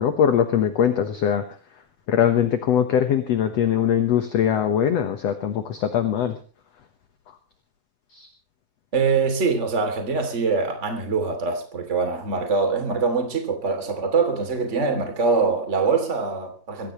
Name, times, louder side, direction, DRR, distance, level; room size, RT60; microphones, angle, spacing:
voice 1, 0.0-1.4 2.1-6.4 8.1-8.3, left 9 dB, 60° left, 1.8 m, -21 dB
voice 2, 8.9-16.9, right 4 dB, 20° right, 2.7 m, -23 dB
22.5 x 16.0 x 3.1 m
omnidirectional pair, 4.3 m